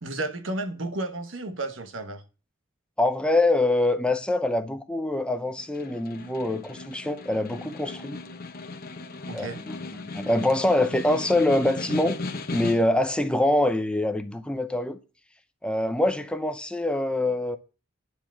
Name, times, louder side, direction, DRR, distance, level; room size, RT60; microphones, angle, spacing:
voice 1, 0.0-2.2 9.3-9.6, right 2 dB, 65° right, 1.2 m, -32 dB
voice 2, 3.0-8.2 9.3-12.2 12.5-15.0 15.6-17.6, left 1 dB, 5° left, 0.6 m, -24 dB
Snare drum, 5.6-13.1, left 3 dB, 45° left, 1.0 m, -37 dB
9.9 x 4.6 x 7.2 m
head